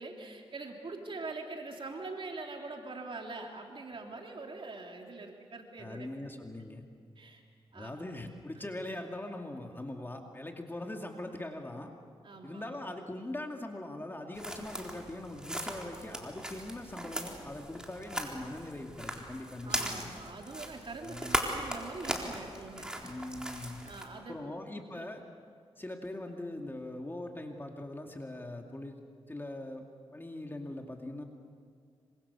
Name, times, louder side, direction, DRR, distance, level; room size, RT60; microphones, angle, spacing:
voice 1, 0.0-6.1 7.2-7.4 7.7-8.0 12.2-12.8 19.6-22.9 23.8-24.5 24.9-25.2, right 3 dB, 55° right, 1 dB, 3.2 m, -43 dB
voice 2, 5.8-6.8 7.7-11.9 12.4-20.1 21.0-21.3 23.0-23.8 24.3-25.2 25.8-29.0 29.3-29.9 30.1-31.2, left 1 dB, 20° left, 2 dB, 2.5 m, -41 dB
sound 1, 14.3-24.0, right 1 dB, 5° right, 4.0 m, -39 dB
26.5 x 25.0 x 7.1 m, 2.1 s
cardioid pair, 70°, 10 cm